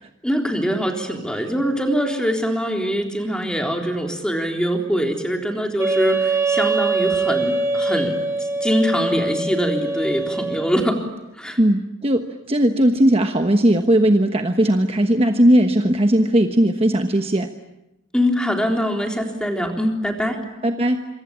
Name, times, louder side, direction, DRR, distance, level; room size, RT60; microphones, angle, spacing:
voice 1, 0.2-11.0 11.4-11.6 18.1-20.4, equal, 5° left, 2 dB, 3.7 m, -23 dB
Wind instrument woodwind instrument, 5.8-10.8, right 3 dB, 15° right, 3.6 m, -23 dB
voice 2, 11.6-17.5 20.4-21.1, right 1 dB, 30° right, 5 dB, 1.2 m, -18 dB
26.5 x 25.0 x 8.8 m, 0.91 s
head